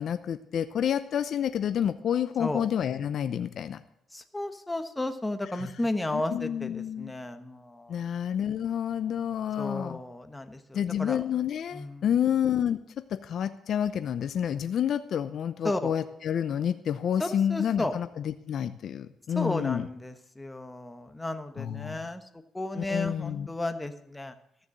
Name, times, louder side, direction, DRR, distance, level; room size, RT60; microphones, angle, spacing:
voice 1, 0.0-3.8 5.5-5.7 6.1-7.1 7.9-10.0 10.7-19.9 21.6-22.1 22.7-23.5, left 9 dB, 65° left, 10 dB, 0.7 m, -29 dB
voice 2, 4.1-8.0 9.6-11.2 11.7-12.0 15.6-15.9 17.2-17.9 19.3-22.2 22.5-24.3, left 2 dB, 10° left, 7 dB, 1.2 m, -33 dB
13.5 x 7.0 x 7.6 m, 0.76 s
cardioid pair, 90°, 0 cm